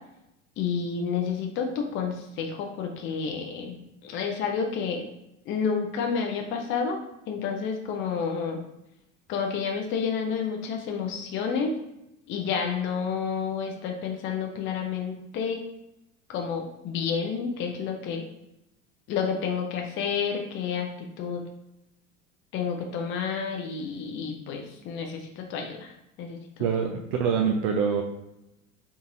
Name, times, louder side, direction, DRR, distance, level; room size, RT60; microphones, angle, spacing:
voice 1, 0.6-5.1 5.5-7.0 7.3-8.6 9.3-11.7 12.3-15.6 16.3-18.2 19.1-21.4 22.5-25.9 26.2-26.6, left 6 dB, 30° left, 2 dB, 0.5 m, -30 dB
voice 2, 26.6-28.0, right 6 dB, 50° right, 2 dB, 0.5 m, -25 dB
3.9 x 3.7 x 2.5 m, 0.89 s
hypercardioid pair, 80°, 39 cm